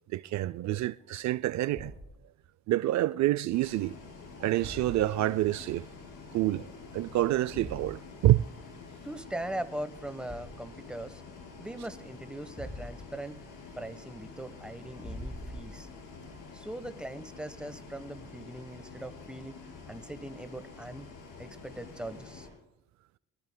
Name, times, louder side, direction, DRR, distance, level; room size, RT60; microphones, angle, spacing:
voice 1, 0.1-1.9 2.7-4.0 4.4-5.9 6.3-8.4, right 15 dB, 65° right, 0.4 m, -27 dB
Thump thud, 1.7-2.2 4.6-5.3 7.5-8.0 10.3-10.7 12.6-13.2 15.0-16.0, equal, 20° left, 6.0 m, -43 dB
Bus, 3.5-22.5, left 4 dB, 80° left, 5.0 m, -48 dB
voice 2, 9.0-11.2 11.6-13.3 13.7-15.9 16.5-19.6 19.9-21.1 21.4-22.5, right 1 dB, 5° right, 1.1 m, -40 dB
25.0 x 19.5 x 2.2 m
cardioid pair, 90°, 30 cm